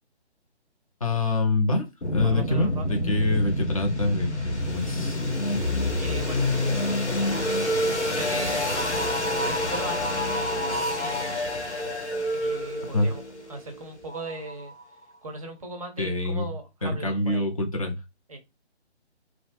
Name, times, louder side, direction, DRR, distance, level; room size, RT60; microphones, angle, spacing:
voice 1, 1.0-5.2 12.9-13.1 16.0-16.5 16.8-17.9, left 2 dB, 30° left, 0.5 m, -26 dB
sound 1, 2.0-14.8, left 1 dB, 90° left, 1.0 m, -27 dB
voice 2, 2.2-3.0 6.0-6.5 8.1-8.7 9.4-11.3 12.3-13.2 13.5-14.7 15.2-17.5 18.3-18.4, right 2 dB, 30° right, 0.5 m, -38 dB
2.6 x 2.0 x 3.0 m
figure-of-eight pair, 145°, 34 cm